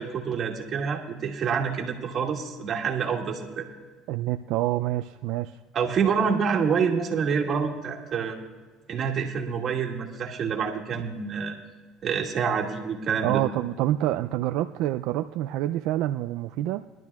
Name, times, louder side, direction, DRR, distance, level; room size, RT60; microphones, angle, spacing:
voice 1, 0.0-3.7 5.7-8.4 8.9-11.6 12.0-13.4, right 6 dB, 45° right, 0 dB, 2.0 m, -27 dB
voice 2, 4.1-5.6 13.2-16.8, right 14 dB, 75° right, 8 dB, 0.3 m, -27 dB
22.0 x 12.0 x 2.4 m, 1.4 s
supercardioid pair, 110°, 0 cm